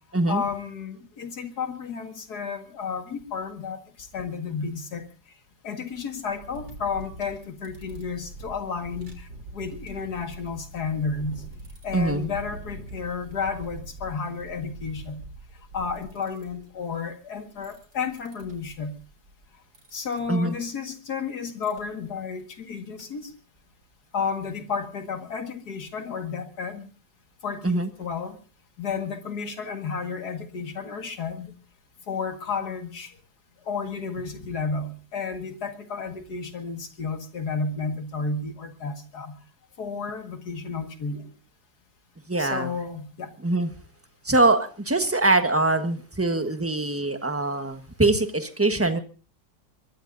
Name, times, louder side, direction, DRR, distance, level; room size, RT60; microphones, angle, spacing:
voice 1, 0.3-5.0 5.6-9.3 9.5-11.4 11.8-15.2 15.7-19.0 19.9-23.3 24.1-26.9 27.4-28.4 28.8-31.5 32.1-33.1 33.7-39.4 39.8-41.3 42.4-43.3, left 5 dB, 60° left, 6 dB, 2.4 m, -32 dB
sound 1, 5.9-16.7 17.5-19.5 19.7-20.2 21.6-21.8 22.4-22.6 23.0-23.1 23.3-23.4 23.7-23.8 24.3-24.4 24.8-24.9, right 2 dB, 90° right, 4.2 m, -43 dB
voice 2, 11.9-12.3 20.3-20.5 27.6-27.9 42.3-42.7 43.4-43.7 44.2-49.0, right 2 dB, 10° right, 8 dB, 1.1 m, -23 dB
23.0 x 21.0 x 2.7 m, 0.36 s
omnidirectional pair, 1.9 m